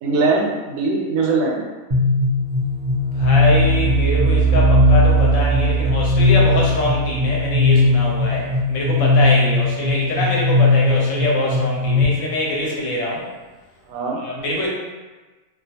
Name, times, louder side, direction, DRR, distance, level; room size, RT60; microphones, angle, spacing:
voice 1, 0.0-1.6 8.9-9.1 13.9-14.2, right 3 dB, 90° right, -1 dB, 1.0 m, -21 dB
sound 1, 1.9-12.0, left 1 dB, 35° right, 0.7 m, -17 dB
voice 2, 3.1-13.3 14.2-14.7, left 1 dB, 70° left, -3 dB, 1.0 m, -24 dB
2.4 x 2.3 x 2.8 m, 1.3 s
omnidirectional pair, 1.4 m